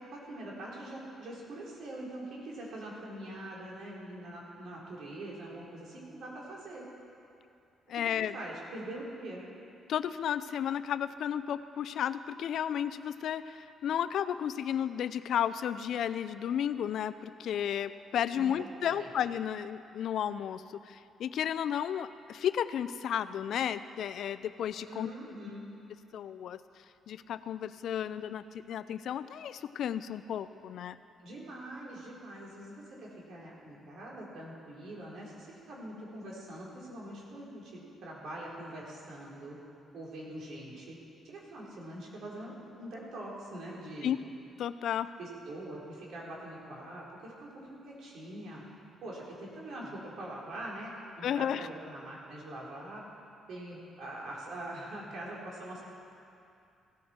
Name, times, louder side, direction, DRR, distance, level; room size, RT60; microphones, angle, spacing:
voice 1, 0.0-6.8 7.9-9.4 18.4-19.1 24.8-25.7 31.2-39.6 39.9-41.0 41.2-44.2 45.2-48.6 49.0-53.0 53.5-55.9, right 1 dB, 70° right, -4 dB, 3.8 m, -43 dB
voice 2, 7.9-8.4 9.9-25.1 26.1-26.6 27.1-31.0 44.0-44.2 44.6-45.1 51.2-51.7, left 9 dB, 70° left, 13 dB, 0.4 m, -33 dB
16.5 x 14.0 x 4.4 m, 2.6 s
cardioid pair, 90°, 0 cm